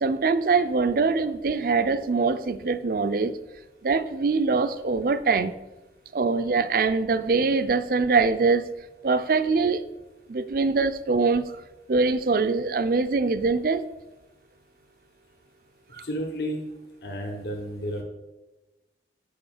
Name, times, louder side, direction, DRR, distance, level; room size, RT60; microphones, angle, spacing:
voice 1, 0.0-3.3 3.8-5.5 6.1-8.6 9.0-9.8 10.3-11.5 11.9-13.9 16.0-16.1, right 4 dB, 50° right, 0.5 m, -23 dB
voice 2, 15.9-16.6 17.0-18.0, equal, 65° left, 1.2 m, -32 dB
6.9 x 5.2 x 7.2 m
head